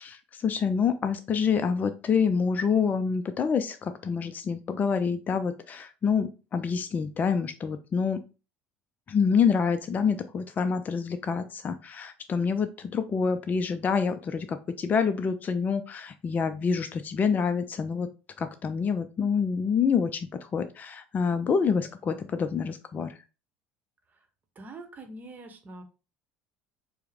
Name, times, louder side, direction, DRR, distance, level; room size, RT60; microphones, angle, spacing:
voice 1, 0.0-8.2 9.1-18.1 18.4-23.2, left 6 dB, 30° left, 9 dB, 0.4 m, -27 dB
voice 2, 24.5-25.8, right 2 dB, 30° right, 6 dB, 0.9 m, -44 dB
4.5 x 2.1 x 3.4 m, 0.32 s
hypercardioid pair, 70°, 6 cm